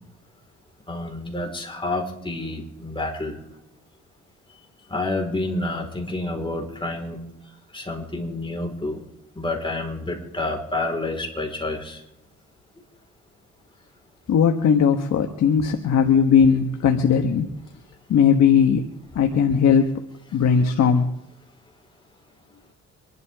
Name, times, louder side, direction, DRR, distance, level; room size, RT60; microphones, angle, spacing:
voice 1, 0.9-3.4 4.9-7.2 7.7-9.0 9.4-12.0, left 2 dB, 15° left, 2 dB, 4.6 m, -29 dB
voice 2, 14.3-17.5 18.1-18.9 19.1-19.9 20.3-21.1, left 7 dB, 65° left, 4 dB, 1.5 m, -18 dB
25.5 x 12.0 x 3.7 m, 0.85 s
cardioid pair, 90°, 30 cm